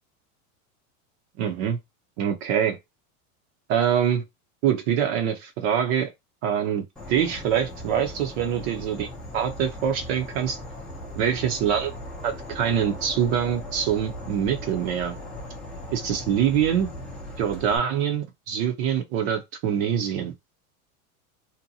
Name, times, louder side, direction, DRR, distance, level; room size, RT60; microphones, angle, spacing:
voice 1, 1.4-1.8 2.2-2.8 3.7-4.2 4.6-6.1 6.4-9.1 9.3-10.6 11.2-11.9 12.2-15.2 15.9-16.9 17.4-20.3, right 9 dB, 50° right, 0.6 m, -24 dB
Insect / Frog, 7.0-17.8, left 1 dB, ahead, 0.5 m, -38 dB
2.7 x 2.1 x 2.6 m
supercardioid pair, 145°, 42 cm